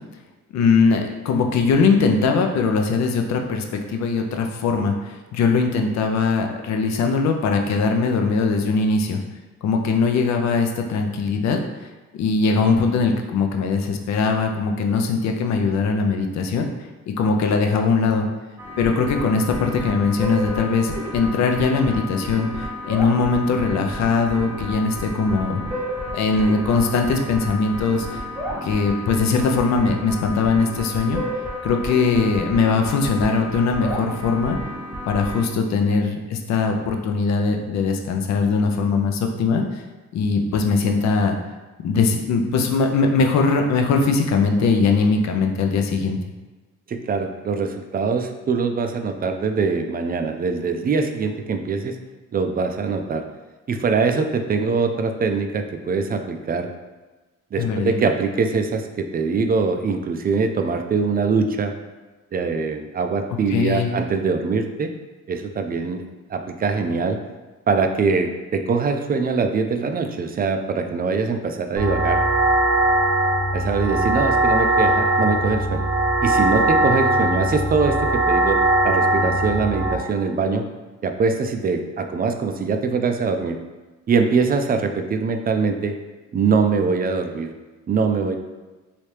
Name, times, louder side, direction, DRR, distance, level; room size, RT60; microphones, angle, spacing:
voice 1, 0.5-9.2 9.6-11.6 12.2-16.7 17.2-18.3 18.8-25.6 26.1-28.1 28.6-31.2 31.6-34.6 35.1-39.8 40.1-41.4 41.8-46.2 57.6-58.1 63.5-63.9, left 4 dB, 65° left, 4 dB, 0.6 m, -21 dB
sound 1, 18.6-35.4, equal, 5° right, 0.8 m, -31 dB
voice 2, 46.9-52.0 52.3-53.2 53.7-56.7 57.5-61.7 62.3-64.9 65.3-66.0 66.3-67.2 67.7-72.2 73.5-75.9 76.2-78.6 78.8-80.7 81.0-83.6 84.1-86.0 86.3-87.5 87.9-88.4, right 4 dB, 30° right, 6 dB, 0.4 m, -23 dB
sound 2, 71.8-79.9, right 1 dB, 75° right, 0.8 m, -20 dB
3.2 x 2.7 x 3.2 m, 1.2 s
cardioid pair, 90°, 30 cm